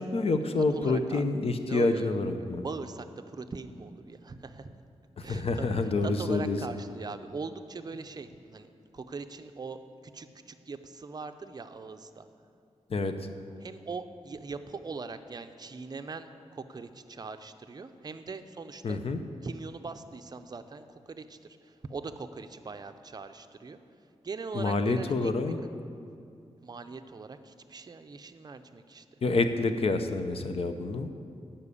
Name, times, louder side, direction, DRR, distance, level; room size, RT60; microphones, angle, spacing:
voice 1, 0.0-2.6 5.2-6.6 12.9-13.1 18.8-19.2 24.5-25.6 29.2-31.1, left 3 dB, 55° left, 8 dB, 0.7 m, -28 dB
voice 2, 0.6-1.2 1.7-2.1 2.6-4.8 5.2-9.8 10.0-12.3 13.6-19.0 19.4-23.8 24.2-25.5 26.6-29.0, right 4 dB, 35° right, 8 dB, 0.5 m, -41 dB
12.0 x 5.6 x 8.3 m, 2.4 s
wide cardioid pair, 145°, 12 cm